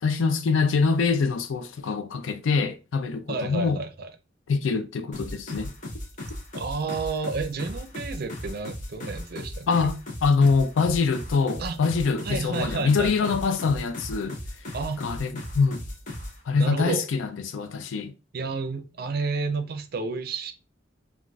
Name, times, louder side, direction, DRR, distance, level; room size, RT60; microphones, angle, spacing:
voice 1, 0.0-3.8 4.5-5.7 9.7-14.4 15.0-15.8 16.5-18.1, left 4 dB, 90° left, 0.4 m, -24 dB
voice 2, 3.3-4.1 6.5-9.9 11.6-11.8 12.2-13.6 14.7-15.0 16.6-17.1 18.3-20.5, right 4 dB, 55° right, 0.5 m, -31 dB
sound 1, 5.1-16.4, left 1 dB, 45° left, 0.8 m, -37 dB
3.9 x 2.4 x 2.3 m
head